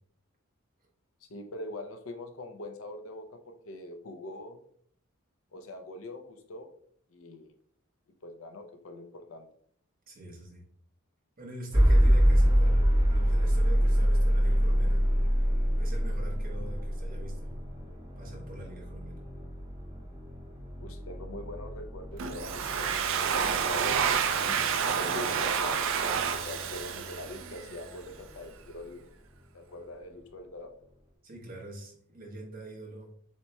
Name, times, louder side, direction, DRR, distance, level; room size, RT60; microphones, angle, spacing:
voice 1, 1.2-4.6 5.5-6.7 7.1-7.5 8.2-9.5 20.8-24.6 25.0-29.1 29.5-30.7, left 2 dB, 75° left, 6 dB, 0.6 m, -43 dB
voice 2, 10.1-10.6 11.4-15.0 15.8-17.5 18.2-19.2 31.2-33.1, right 1 dB, 45° right, -2 dB, 1.3 m, -44 dB
sound 1, 11.7-27.7, equal, 20° right, 1.0 m, -27 dB
Domestic sounds home sounds, 22.2-27.8, right 7 dB, 65° right, 0.4 m, -29 dB
7.2 x 2.9 x 2.2 m, 0.63 s
head